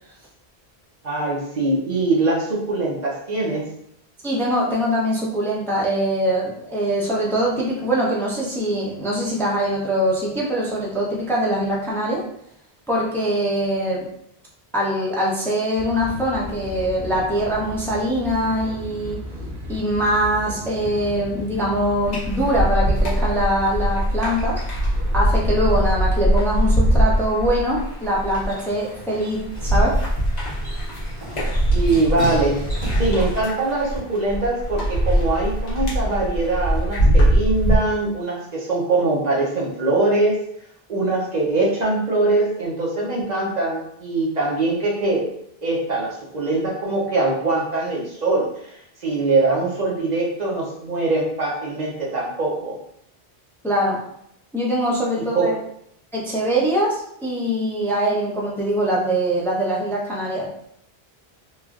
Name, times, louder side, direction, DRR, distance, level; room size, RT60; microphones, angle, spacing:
voice 1, 1.0-3.7 31.7-40.4 40.9-45.3 45.6-52.8 55.2-55.6, right 2 dB, 50° right, -4 dB, 0.7 m, -22 dB
voice 2, 4.2-12.3 12.9-14.1 14.7-19.2 19.7-24.6 25.1-30.0 53.6-54.0 54.5-55.5 56.1-60.5, equal, 5° left, -4 dB, 0.3 m, -23 dB
sound 1, 15.8-26.2, left 1 dB, 70° right, 1.1 m, -36 dB
sound 2, 22.0-37.8, equal, 45° left, 0.9 m, -21 dB
sound 3, 27.9-33.4, right 2 dB, 30° right, 1.3 m, -35 dB
3.1 x 2.4 x 2.3 m, 0.72 s
omnidirectional pair, 1.1 m